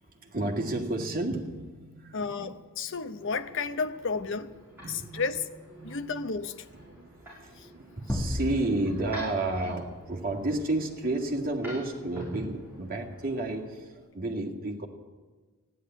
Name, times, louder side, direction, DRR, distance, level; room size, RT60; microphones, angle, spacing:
voice 1, 0.0-2.5 2.9-3.0 4.8-5.4 5.8-6.0 6.7-14.9, right 2 dB, 40° right, 0 dB, 2.0 m, -32 dB
voice 2, 2.1-4.5 4.9-5.5 5.8-6.7 7.6-7.7 9.6-9.8, left 4 dB, 55° left, 10 dB, 0.8 m, -32 dB
sound 1, 3.0-13.6, right 1 dB, 10° right, 7.1 m, -47 dB
sound 2, 8.1-10.7, left 1 dB, 10° left, 1.5 m, -35 dB
15.0 x 10.5 x 9.1 m, 1.3 s
head